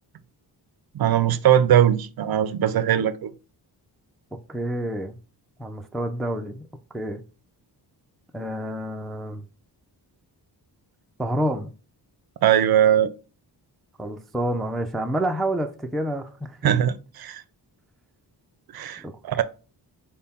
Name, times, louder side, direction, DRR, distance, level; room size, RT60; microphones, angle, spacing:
voice 1, 0.9-3.3 12.4-13.1 16.6-17.4 18.7-19.4, right 10 dB, 60° right, 0.5 m, -20 dB
voice 2, 4.5-5.2 5.6-6.6 6.9-7.2 8.3-9.4 11.2-11.7 14.0-16.7 19.0-19.4, right 1 dB, ahead, 0.3 m, -28 dB
5.5 x 2.2 x 4.1 m
wide cardioid pair, 120°, 42 cm